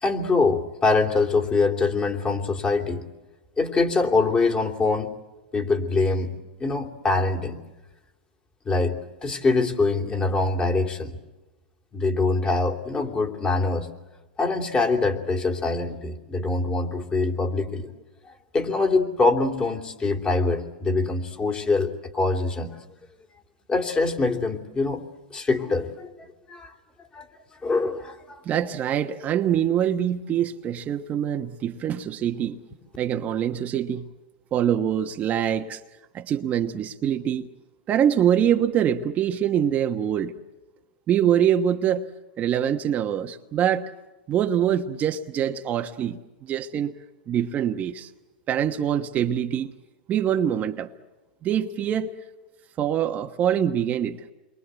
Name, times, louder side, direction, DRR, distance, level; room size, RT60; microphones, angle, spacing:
voice 1, 0.0-3.1 3.6-5.1 5.5-6.3 6.6-7.6 8.6-11.2 11.9-13.9 14.4-17.9 18.5-22.8 23.7-25.0 25.3-26.1 26.5-26.7 27.1-27.3 27.6-28.4, left 3 dB, 20° left, 4 dB, 3.2 m, -24 dB
voice 2, 28.4-32.6 33.0-34.1 34.5-35.8 36.1-37.5 37.9-40.3 41.1-42.0 42.4-43.9 44.3-46.9 47.3-48.1 48.5-49.7 50.1-50.9 51.4-52.1 52.8-54.2, right 9 dB, 30° right, 5 dB, 1.1 m, -24 dB
29.0 x 23.0 x 8.1 m, 1.1 s
hypercardioid pair, 120°, 5 cm